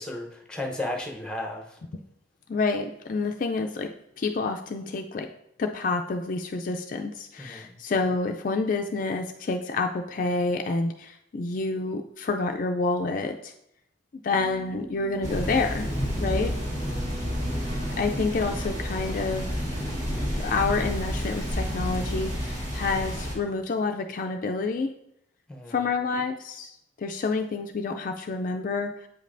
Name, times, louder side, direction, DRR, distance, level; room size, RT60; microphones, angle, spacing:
voice 1, 0.0-1.8 7.4-7.8 16.8-17.2 25.5-25.8, left 1 dB, 5° left, 2 dB, 0.7 m, -35 dB
voice 2, 2.5-3.9 4.2-5.3 5.6-13.5 14.2-15.9 16.2-16.5 18.0-19.6 20.4-24.9 25.7-26.7 27.0-28.9, left 3 dB, 45° left, 4 dB, 0.3 m, -28 dB
Keyboard (musical), 14.3-23.0, right 1 dB, 85° right, 1.6 m, -44 dB
sound 1, 15.2-23.4, equal, 35° right, 1.8 m, -30 dB
8.1 x 5.2 x 2.6 m, 0.78 s
head